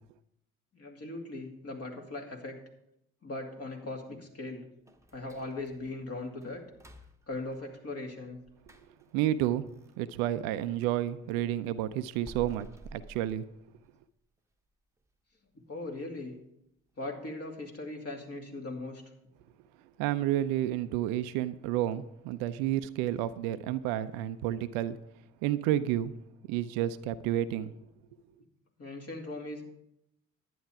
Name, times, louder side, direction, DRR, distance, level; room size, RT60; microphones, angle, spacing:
voice 1, 0.7-2.6 3.2-4.7 5.1-6.6 7.3-8.4 15.7-16.3 17.0-19.0 28.8-29.7, left 2 dB, 40° left, 2 dB, 2.4 m, -39 dB
sound 1, 4.9-10.8 11.2-14.0 14.4-14.5 15.0-15.1 15.6-15.9 16.2-16.3 16.9-17.0, right 1 dB, 10° right, 1.1 m, -53 dB
voice 2, 9.1-9.6 10.0-13.5 20.0-25.0 25.4-26.1 26.5-27.7, right 12 dB, 70° right, 14 dB, 0.6 m, -30 dB
10.5 x 9.4 x 4.7 m, 0.80 s
hypercardioid pair, 50°, 37 cm